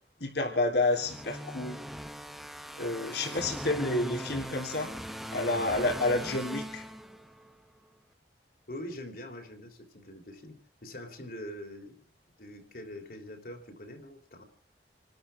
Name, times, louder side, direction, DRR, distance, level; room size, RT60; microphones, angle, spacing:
voice 1, 0.2-1.8 2.8-4.9 5.3-6.8, left 2 dB, 75° left, 1 dB, 3.6 m, -29 dB
sound 1, 0.8-7.5, equal, ahead, 0.9 m, -40 dB
voice 2, 8.7-12.1 12.4-14.4, left 1 dB, 55° left, 4 dB, 3.5 m, -44 dB
29.0 x 13.0 x 3.6 m, 0.43 s
head